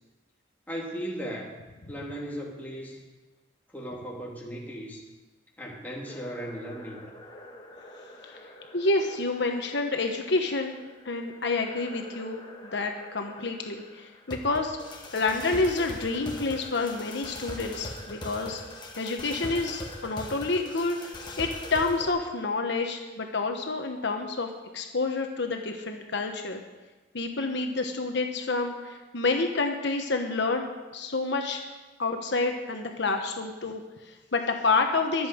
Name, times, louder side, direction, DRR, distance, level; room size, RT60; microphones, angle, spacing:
voice 1, 0.7-1.5 1.9-3.0 3.7-5.0 5.6-7.1, equal, 10° left, -3 dB, 2.7 m, -37 dB
sound 1, 6.1-22.1, left 1 dB, 25° left, 1.7 m, -43 dB
voice 2, 8.7-10.8 11.0-14.8 15.1-18.6 19.0-21.0 21.4-24.5 24.7-26.6 27.1-31.6 32.0-35.3, left 3 dB, 65° left, 4 dB, 1.2 m, -28 dB
23.5 x 8.2 x 5.2 m, 1.2 s
head